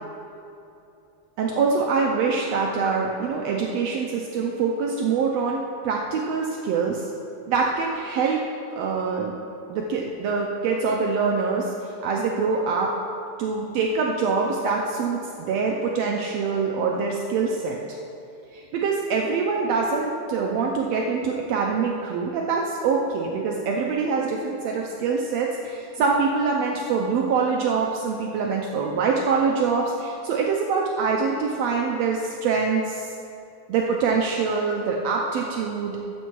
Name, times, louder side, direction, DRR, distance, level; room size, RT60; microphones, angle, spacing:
voice 1, 1.4-7.1 7.5-8.4 8.7-9.3 9.7-12.9 13.4-17.8 18.5-33.1 33.7-36.0, right 5 dB, 80° right, 0 dB, 1.5 m, -24 dB
13.5 x 8.0 x 3.1 m, 2.7 s
omnidirectional pair, 3.5 m